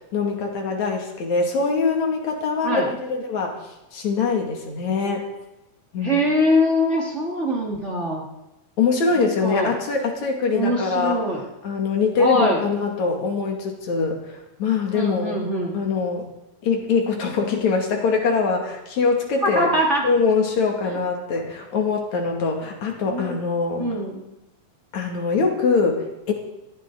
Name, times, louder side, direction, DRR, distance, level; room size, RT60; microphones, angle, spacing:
voice 1, 0.1-3.6 3.9-5.3 5.9-6.2 8.8-11.2 11.6-15.4 15.7-16.3 16.6-19.7 20.0-23.8 24.9-26.3, left 4 dB, 75° left, 1 dB, 3.7 m, -23 dB
voice 2, 6.0-8.2 9.1-9.7 10.5-11.4 12.2-12.6 14.9-15.8 19.4-20.0 23.1-23.4 23.8-24.3, equal, 25° right, -2 dB, 2.2 m, -23 dB
20.5 x 15.0 x 4.0 m, 0.95 s
omnidirectional pair, 3.3 m